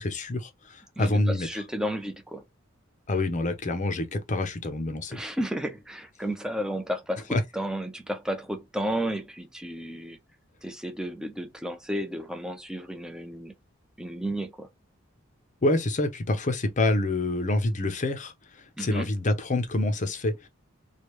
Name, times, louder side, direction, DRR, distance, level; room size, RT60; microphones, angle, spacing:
voice 1, 0.0-1.5 3.1-5.2 7.3-7.4 15.6-20.5, left 2 dB, 40° left, 0.7 m, -27 dB
voice 2, 1.0-2.4 5.1-7.3 7.5-10.2 10.6-13.5 14.0-14.7 18.8-19.1, equal, 5° right, 0.6 m, -32 dB
3.2 x 2.4 x 3.0 m
head